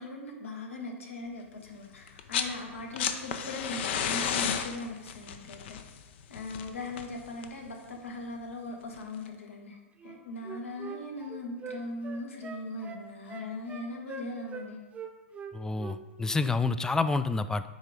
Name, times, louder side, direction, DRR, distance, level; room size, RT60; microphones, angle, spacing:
voice 1, 0.0-5.8 6.3-9.8 10.0-14.8, left 2 dB, 70° left, 2 dB, 1.5 m, -39 dB
sound 1, 2.1-2.6 2.8-7.7 8.9-9.0, left 8 dB, 55° left, 0.6 m, -33 dB
Wind instrument woodwind instrument, 10.0-14.7 14.9-16.0 16.3-16.5, right 5 dB, 15° right, 0.8 m, -42 dB
voice 2, 15.5-17.6, left 3 dB, 10° left, 12 dB, 0.3 m, -28 dB
9.2 x 3.7 x 4.9 m, 1.2 s
figure-of-eight pair, 105°, 7 cm